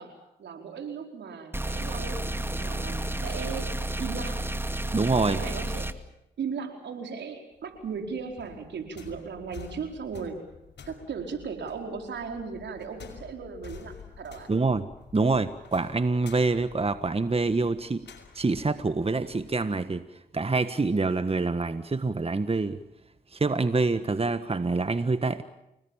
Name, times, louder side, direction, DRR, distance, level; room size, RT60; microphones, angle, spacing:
voice 1, 0.0-2.2 2.6-3.7 4.0-4.5 5.3-5.9 6.4-10.5 10.9-14.5, right 5 dB, 80° right, 4 dB, 4.6 m, -37 dB
sound 1, 1.5-5.9, right 1 dB, 10° right, 2.2 m, -31 dB
voice 2, 4.9-5.4 14.5-18.0 18.3-20.1 20.3-22.8 23.3-25.4, right 3 dB, 35° right, 12 dB, 1.5 m, -26 dB
sound 2, 7.6-19.6, left 7 dB, 75° left, 5.6 m, -50 dB
30.0 x 19.5 x 7.3 m, 0.88 s
supercardioid pair, 45°, 18 cm